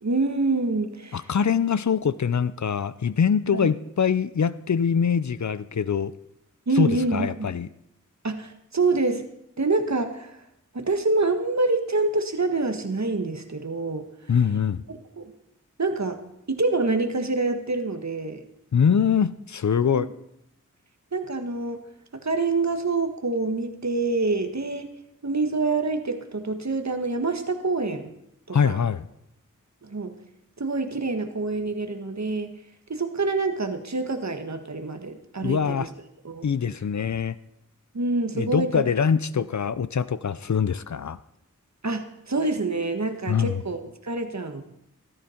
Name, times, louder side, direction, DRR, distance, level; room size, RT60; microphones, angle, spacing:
voice 1, 0.0-1.3 3.5-3.7 6.7-7.5 8.2-9.2 9.6-10.3 10.7-14.1 14.9-15.3 15.8-16.2 16.5-18.4 19.8-20.1 21.1-21.8 22.1-24.9 25.2-28.1 28.5-28.8 29.8-30.1 30.6-32.5 32.9-35.9 36.2-36.5 37.9-38.8 41.8-44.6, right 3 dB, 60° right, 7 dB, 1.5 m, -26 dB
voice 2, 1.1-6.1 6.8-7.7 14.3-14.8 18.7-20.1 28.5-29.1 35.4-35.9 36.4-37.4 38.3-41.2 43.3-43.5, left 7 dB, 65° left, 16 dB, 0.6 m, -23 dB
14.0 x 13.0 x 4.4 m, 0.82 s
wide cardioid pair, 50°, 32 cm